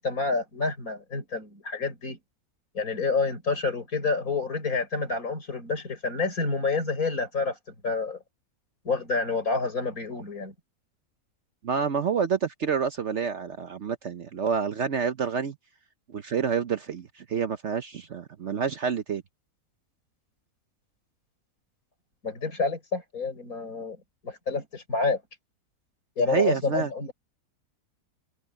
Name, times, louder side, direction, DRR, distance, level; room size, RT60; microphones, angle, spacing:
voice 1, 0.0-2.2 2.7-8.2 8.8-10.5 22.2-24.0 24.2-25.2 26.2-27.1, left 4 dB, 60° left, 5.7 m, -28 dB
voice 2, 11.6-15.5 16.1-19.2 26.2-26.9, right 6 dB, 55° right, 1.0 m, -28 dB
omnidirectional pair, 1.7 m